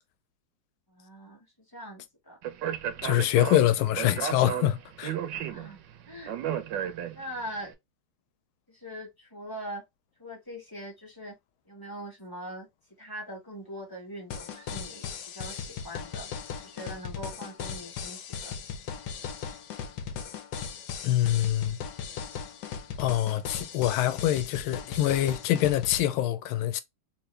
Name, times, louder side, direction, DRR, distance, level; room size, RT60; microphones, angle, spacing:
voice 1, 0.9-1.5 1.7-2.4 5.5-5.8 6.1-6.3 7.1-7.7 8.7-9.8 10.2-11.4 11.6-12.7 13.0-16.3 16.6-18.5, equal, 10° left, 1.2 m, -41 dB
Speech, 2.4-7.5, right 9 dB, 70° right, 1.3 m, -34 dB
voice 2, 3.0-5.2 21.0-21.8 23.0-26.8, left 13 dB, 85° left, 1.4 m, -25 dB
sound 1, 14.3-26.0, left 6 dB, 65° left, 1.1 m, -38 dB
3.4 x 3.0 x 3.2 m
omnidirectional pair, 2.2 m